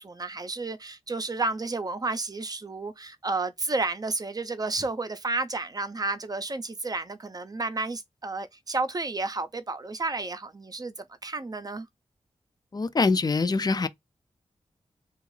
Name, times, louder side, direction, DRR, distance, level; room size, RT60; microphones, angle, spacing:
voice 1, 0.0-10.9 11.2-11.9, right 3 dB, 35° right, 0.6 m, -31 dB
voice 2, 12.7-13.9, left 4 dB, 35° left, 0.5 m, -24 dB
2.5 x 2.4 x 3.2 m
cardioid pair, 40°, 12 cm